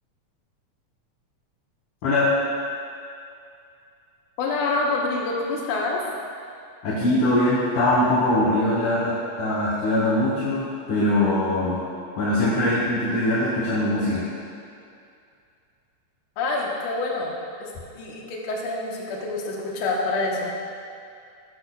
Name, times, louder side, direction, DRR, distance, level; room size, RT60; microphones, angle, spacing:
voice 1, 4.4-6.0 16.4-20.5, left 3 dB, 65° left, -2 dB, 1.4 m, -27 dB
voice 2, 6.8-11.8 12.2-14.2, left 1 dB, 90° left, -8 dB, 2.5 m, -22 dB
14.0 x 4.8 x 2.3 m, 2.4 s
omnidirectional pair, 3.4 m